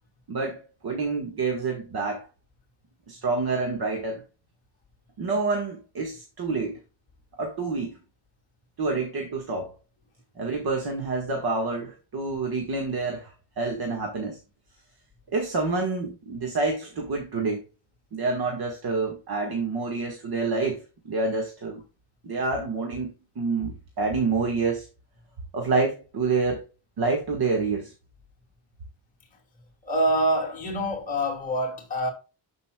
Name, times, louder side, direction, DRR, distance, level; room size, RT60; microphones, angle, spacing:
voice 1, 0.3-2.3 3.1-4.2 5.2-6.8 7.4-8.0 8.8-9.7 10.4-14.4 15.3-17.6 18.1-21.8 22.2-24.9 25.5-26.6 27.0-27.9, right 3 dB, 50° right, 1.7 m, -28 dB
voice 2, 29.8-32.1, right 1 dB, 15° left, 2.5 m, -25 dB
12.5 x 5.4 x 2.3 m
wide cardioid pair, 170°, 48 cm